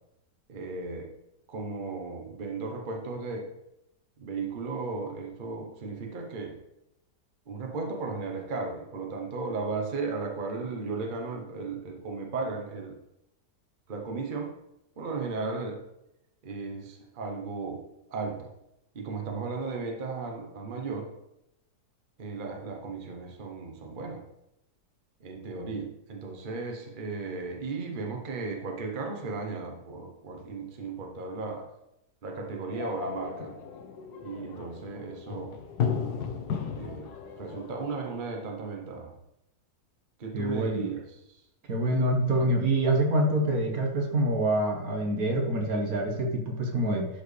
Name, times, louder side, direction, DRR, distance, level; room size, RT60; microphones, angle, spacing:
voice 1, 0.5-1.1 1.5-3.5 4.2-6.6 7.5-13.0 13.9-14.5 15.0-15.8 16.4-17.8 18.1-18.5 18.9-21.1 22.2-24.2 25.2-31.7 32.2-33.5 34.2-35.5 36.8-37.1 37.4-39.1 40.2-41.0, right 4 dB, 35° right, 1 dB, 1.0 m, -35 dB
sound 1, 32.7-37.9, left 7 dB, 70° left, 1.4 m, -35 dB
voice 2, 40.3-40.8 41.7-47.1, right 1 dB, 60° right, 1 dB, 1.5 m, -26 dB
11.5 x 4.6 x 3.3 m, 0.84 s
omnidirectional pair, 1.8 m